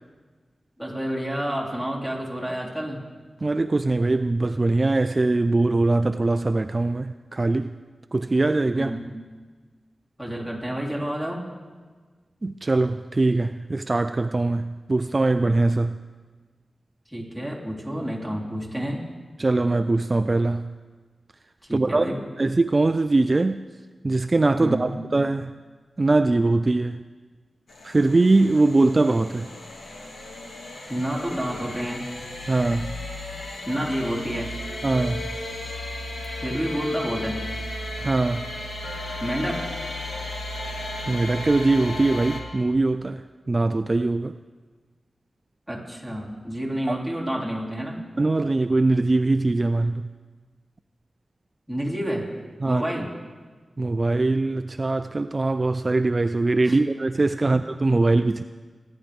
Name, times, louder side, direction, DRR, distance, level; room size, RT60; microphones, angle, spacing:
voice 1, 0.8-3.0 8.7-9.1 10.2-11.4 17.1-19.0 21.7-22.2 24.6-24.9 30.9-32.0 33.7-34.5 36.4-37.4 39.2-39.7 45.7-48.0 51.7-52.3 52.6-53.1 56.6-56.8, equal, 5° left, 3.8 m, -29 dB
voice 2, 3.4-7.7 8.1-8.9 12.4-16.0 19.4-20.7 21.7-22.1 22.4-23.6 24.0-25.5 26.0-27.0 27.8-29.5 32.5-32.9 34.8-35.2 38.0-38.5 41.1-44.4 48.2-50.0 52.6-52.8 53.8-58.4, right 2 dB, 40° right, 0.3 m, -22 dB
sound 1, 27.7-42.4, left 1 dB, 85° left, 2.2 m, -35 dB
25.0 x 10.5 x 3.5 m
cardioid pair, 60°, 0 cm